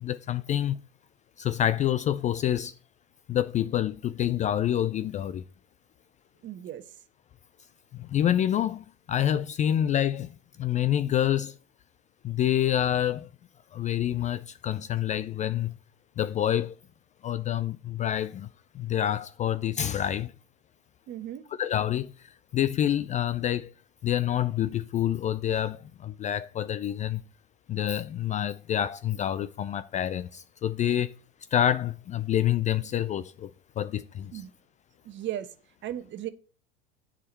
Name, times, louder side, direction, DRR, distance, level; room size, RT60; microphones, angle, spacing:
voice 1, 0.0-0.8 1.4-2.7 3.3-5.4 7.9-11.6 12.2-13.3 13.7-15.7 16.2-16.7 17.2-18.5 18.7-20.3 21.6-23.7 24.0-27.2 27.7-31.1 31.5-34.4, left 11 dB, 25° left, 0.4 m, -27 dB
voice 2, 6.4-6.8 21.1-21.4 34.3-34.5 35.0-35.5 35.8-36.3, right 12 dB, 40° right, 1.3 m, -36 dB
8.3 x 5.0 x 7.5 m
hypercardioid pair, 90°, 30 cm